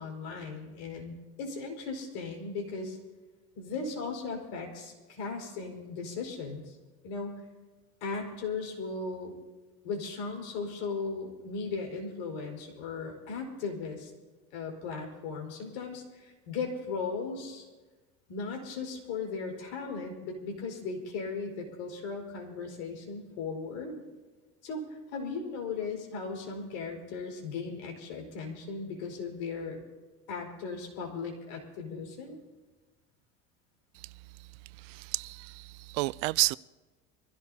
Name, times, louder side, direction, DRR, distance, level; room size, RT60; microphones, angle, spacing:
voice 1, 0.0-3.0 3.5-6.8 7.0-7.4 8.0-9.3 9.8-14.1 14.5-17.7 18.3-24.0 24.6-29.8 30.3-32.4, left 4 dB, 85° left, 4.9 m, -37 dB
voice 2, 34.8-36.6, right 23 dB, 85° right, 0.5 m, -31 dB
25.0 x 16.0 x 2.8 m
cardioid pair, 140°, 31 cm